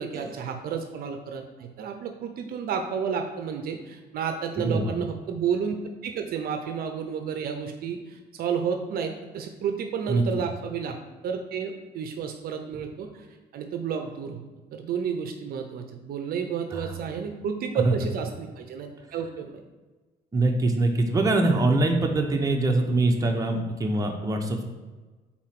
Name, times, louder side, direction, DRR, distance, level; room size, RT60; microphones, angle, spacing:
voice 1, 0.0-5.8 6.0-11.0 11.2-13.3 13.5-14.5 14.7-19.6 23.9-24.0, right 7 dB, 60° right, 5 dB, 0.6 m, -31 dB
voice 2, 4.6-5.0 10.1-10.2 16.7-16.9 17.8-17.9 20.3-24.6, right 2 dB, 20° right, 2 dB, 0.9 m, -23 dB
4.4 x 4.3 x 5.8 m, 1.3 s
cardioid pair, 110°, 17 cm